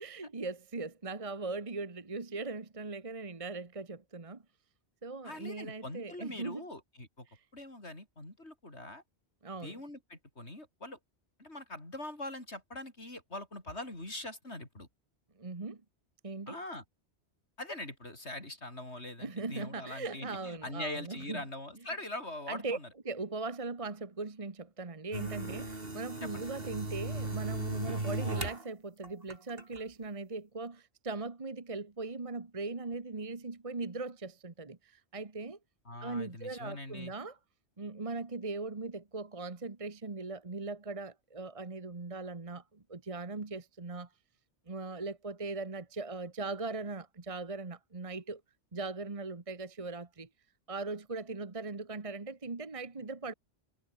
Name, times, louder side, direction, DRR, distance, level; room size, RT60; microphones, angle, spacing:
voice 1, 0.0-4.4 5.0-6.6 7.3-7.4 9.4-9.7 15.4-15.8 16.2-16.6 19.2-21.4 22.5-22.8 23.0-35.6 36.0-37.4 37.8-44.1 44.7-48.4 48.7-50.3 50.7-53.3, right 3 dB, 30° right, 1.4 m, -39 dB
voice 2, 5.2-7.3 7.5-9.0 9.6-11.0 11.4-14.9 16.5-16.8 17.6-22.9 26.2-26.5 35.8-37.1, left 1 dB, 80° left, 6.8 m, -42 dB
sound 1, 25.1-28.6 29.0-29.8, right 2 dB, 60° right, 4.4 m, -36 dB
omnidirectional pair, 1.1 m